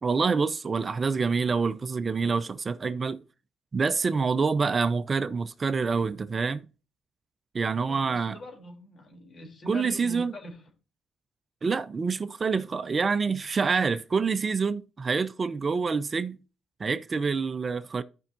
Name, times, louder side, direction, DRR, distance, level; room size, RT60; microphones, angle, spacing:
voice 1, 0.0-3.2 3.7-6.6 7.5-8.4 9.7-10.3 11.6-16.4 16.8-18.0, right 5 dB, 35° right, 0.6 m, -27 dB
voice 2, 7.8-10.6, left 1 dB, 50° left, 3.3 m, -42 dB
13.5 x 5.5 x 2.7 m
cardioid pair, 90°, 0 cm